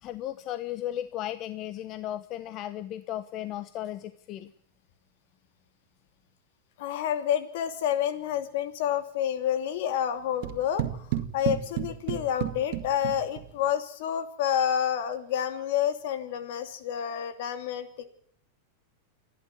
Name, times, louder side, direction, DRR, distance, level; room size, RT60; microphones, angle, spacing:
voice 1, 0.0-4.5, left 12 dB, 40° left, 13 dB, 1.0 m, -35 dB
voice 2, 6.8-11.1 11.3-18.1, left 9 dB, 65° left, 9 dB, 2.8 m, -29 dB
sound 1, 10.4-13.7, right 13 dB, 55° right, 1.9 m, -33 dB
28.5 x 11.5 x 8.1 m, 0.64 s
supercardioid pair, 130°, 0 cm